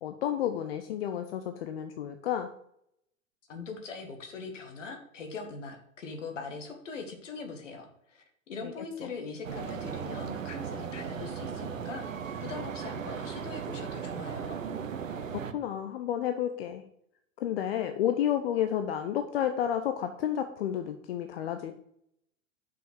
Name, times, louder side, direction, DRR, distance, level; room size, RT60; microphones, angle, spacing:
voice 1, 0.0-2.5 8.6-8.7 9.0-9.1 15.5-16.8 17.4-21.7, left 10 dB, 45° left, 8 dB, 0.7 m, -31 dB
voice 2, 3.5-12.1 12.4-14.6, left 4 dB, 65° left, 4 dB, 1.9 m, -41 dB
sound 1, 9.4-15.5, right 7 dB, 70° right, 0.9 m, -37 dB
6.3 x 5.7 x 6.2 m, 0.73 s
figure-of-eight pair, 100°, 40 cm